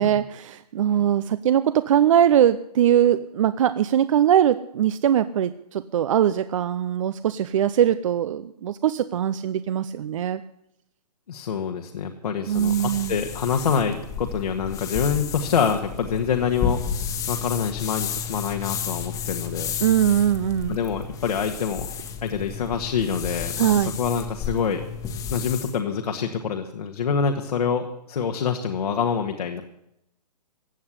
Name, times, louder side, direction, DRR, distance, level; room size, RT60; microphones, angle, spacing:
voice 1, 0.0-10.4 12.5-13.2 19.8-20.8 23.6-23.9, right 10 dB, 50° right, 14 dB, 0.6 m, -21 dB
voice 2, 11.3-16.8 17.1-19.7 20.7-21.9 22.2-24.8 25.3-29.6, left 6 dB, 65° left, 4 dB, 1.8 m, -26 dB
sound 1, 12.5-25.8, left 7 dB, 15° left, 1.3 m, -32 dB
16.0 x 8.6 x 9.8 m, 0.81 s
hypercardioid pair, 140°, 21 cm